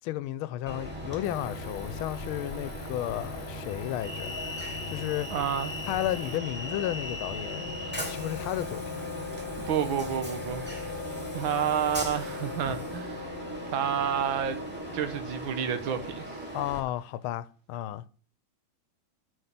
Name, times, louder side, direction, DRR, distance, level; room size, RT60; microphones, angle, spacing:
voice 1, 0.0-4.3 4.9-5.3 5.9-9.0 16.5-18.0, left 14 dB, 85° left, 1.4 m, -33 dB
Train, 0.7-16.8, equal, 5° right, 2.0 m, -38 dB
Engine, 1.2-6.4, left 9 dB, 65° left, 0.9 m, -45 dB
voice 2, 5.3-5.8 9.7-10.9 11.3-13.3 13.7-14.6 14.9-16.4, right 8 dB, 75° right, 1.7 m, -30 dB
Wind instrument woodwind instrument, 7.5-15.3, left 7 dB, 30° left, 1.2 m, -41 dB
7.9 x 5.2 x 5.8 m
omnidirectional pair, 2.2 m